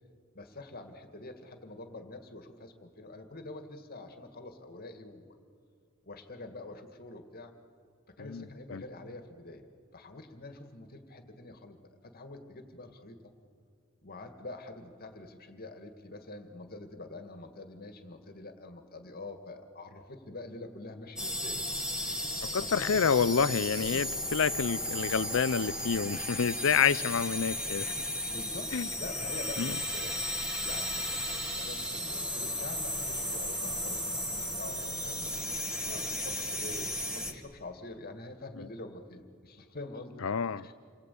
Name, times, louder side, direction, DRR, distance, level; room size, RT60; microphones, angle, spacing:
voice 1, 0.3-5.4 6.0-7.5 8.1-9.6 9.9-11.8 12.0-13.3 14.0-21.6 22.0-22.3 22.6-23.0 23.9-24.2 28.3-30.2 30.6-35.6 35.9-40.3 40.5-40.7, left 2 dB, 45° left, 2.1 m, -46 dB
sound 1, 21.2-37.3, equal, 5° right, 2.3 m, -35 dB
voice 2, 22.5-27.9 28.7-28.9 29.6-29.8 38.6-38.7 40.2-40.6, left 6 dB, 65° left, 0.6 m, -28 dB
29.0 x 22.5 x 8.5 m
head